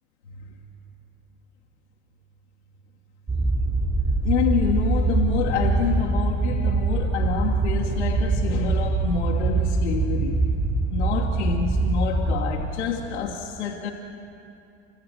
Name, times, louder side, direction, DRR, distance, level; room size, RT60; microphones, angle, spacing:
sound 1, 3.3-12.6, right 3 dB, 20° right, 5.4 m, -23 dB
voice 1, 4.2-10.4 10.9-13.9, left 6 dB, 85° left, 1.4 m, -27 dB
29.5 x 13.5 x 7.6 m
hypercardioid pair, 80°, 34 cm